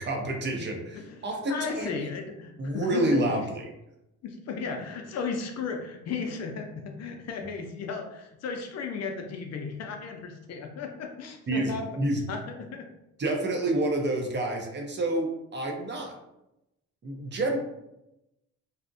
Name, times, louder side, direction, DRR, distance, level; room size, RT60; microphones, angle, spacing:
voice 1, 0.1-2.0 2.6-3.6 11.5-12.2 13.2-16.2 17.0-17.6, right 1 dB, 35° right, 2 dB, 0.6 m, -28 dB
voice 2, 0.9-1.2 1.5-3.5 4.2-12.9, left 5 dB, 60° left, 3 dB, 0.5 m, -35 dB
2.6 x 2.0 x 2.5 m, 0.88 s
cardioid pair, 90°, 30 cm